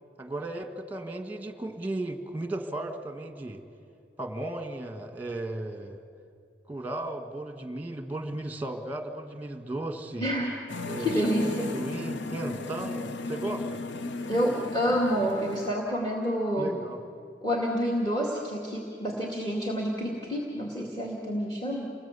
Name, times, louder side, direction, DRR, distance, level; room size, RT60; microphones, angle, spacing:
voice 1, 0.2-3.6 4.2-6.0 6.7-10.3 10.9-13.8 16.6-17.0, right 2 dB, 10° right, 5 dB, 1.5 m, -35 dB
voice 2, 10.2-10.6 11.0-11.7 14.3-16.8 17.4-21.9, equal, 25° left, -2 dB, 2.3 m, -28 dB
sound 1, 10.7-15.7, left 3 dB, 75° left, 0.8 m, -36 dB
29.0 x 20.5 x 8.3 m, 2.4 s
head